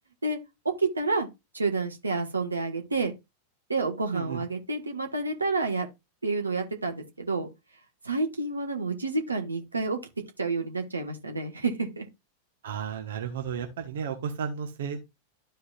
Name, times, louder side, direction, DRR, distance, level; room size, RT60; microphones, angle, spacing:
voice 1, 0.8-1.3 1.5-3.1 3.7-5.9 6.2-7.5 8.0-10.0 10.4-12.0, right 3 dB, 80° right, 1.4 m, -29 dB
voice 2, 4.1-4.4 12.6-15.0, right 7 dB, 60° right, 1.1 m, -33 dB
12.5 x 4.6 x 2.4 m
figure-of-eight pair, 90°, 0 cm